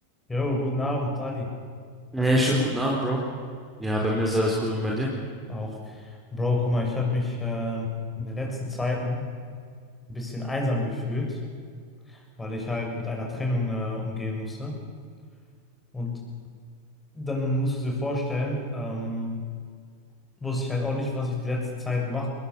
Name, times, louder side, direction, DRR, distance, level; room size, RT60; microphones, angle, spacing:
voice 1, 0.3-1.5 2.2-2.7 5.5-9.3 10.1-11.4 12.1-14.8 15.9-16.2 17.1-19.5 20.4-22.3, left 2 dB, 10° left, 1 dB, 6.7 m, -29 dB
voice 2, 2.1-3.2 3.8-5.1, equal, 10° right, -2 dB, 4.4 m, -24 dB
24.0 x 20.5 x 7.0 m, 2.1 s
hypercardioid pair, 95°, 0 cm